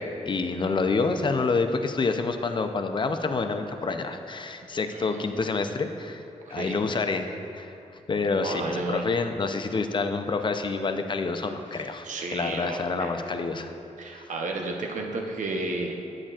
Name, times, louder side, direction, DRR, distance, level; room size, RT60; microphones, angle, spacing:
voice 1, 0.0-6.2 6.5-7.7 8.1-13.7 14.1-14.3, left 4 dB, 40° left, 7 dB, 0.5 m, -28 dB
voice 2, 4.9-5.6 6.5-6.9 8.3-9.1 11.7-13.1 14.0-16.0, right 3 dB, 75° right, 1 dB, 0.8 m, -33 dB
9.8 x 8.7 x 2.4 m, 2.8 s
cardioid pair, 80°, 13 cm